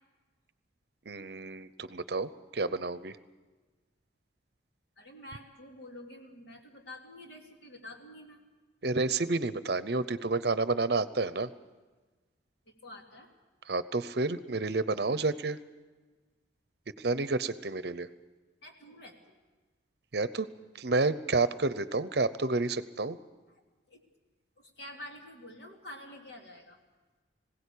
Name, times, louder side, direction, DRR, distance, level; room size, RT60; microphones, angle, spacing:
voice 1, 1.1-3.2 8.8-11.5 13.7-15.6 17.0-18.1 20.1-20.5 20.7-23.2, right 3 dB, 60° right, 14 dB, 0.7 m, -30 dB
voice 2, 5.0-8.4 12.7-13.3 18.6-19.4 23.9-24.0 24.6-26.8, left 1 dB, 65° left, 1 dB, 3.0 m, -48 dB
20.5 x 17.0 x 8.5 m, 1.3 s
head